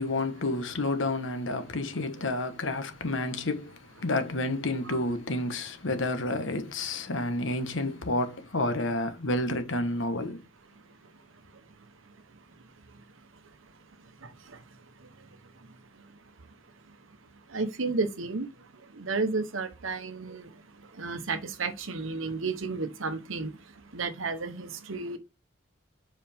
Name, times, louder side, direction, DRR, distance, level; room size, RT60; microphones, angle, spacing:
voice 1, 0.0-10.4, left 2 dB, 75° left, 1.2 m, -30 dB
voice 2, 17.5-18.5 19.0-20.4 21.0-23.5 23.9-25.2, right 4 dB, 80° right, 1.1 m, -32 dB
7.4 x 4.9 x 3.5 m
head